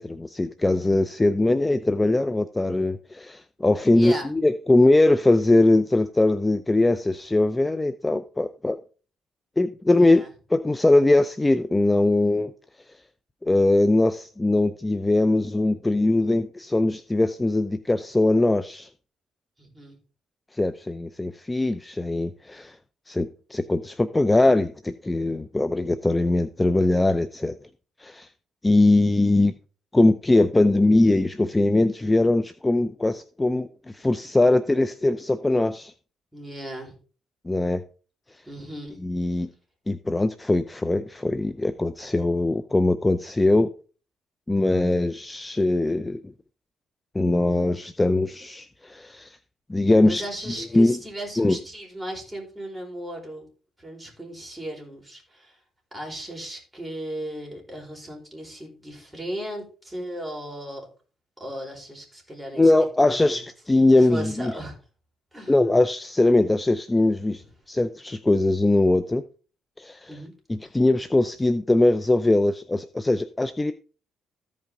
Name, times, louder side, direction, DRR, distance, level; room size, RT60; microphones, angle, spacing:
voice 1, 0.0-8.8 9.6-10.2 10.5-12.5 13.4-18.9 20.5-22.8 23.1-27.5 28.0-28.3 28.6-29.5 29.9-35.9 37.5-37.8 39.0-39.5 39.9-43.7 44.5-46.2 47.1-49.4 49.7-50.2 50.7-51.0 51.4-51.6 62.6-64.5 65.5-67.4 67.7-69.2 69.8-70.1 70.5-73.7, left 2 dB, 15° left, 0.5 m, -21 dB
voice 2, 3.9-4.3 9.9-10.3 19.6-19.9 36.3-37.0 38.4-39.0 50.0-53.4 53.8-55.6 55.9-60.9 61.4-62.7 63.0-63.4 64.0-64.8 65.3-65.5 67.4-67.5 70.1-70.3, right 1 dB, 10° right, 4.7 m, -36 dB
14.5 x 5.3 x 3.7 m
cardioid pair, 90°, 0 cm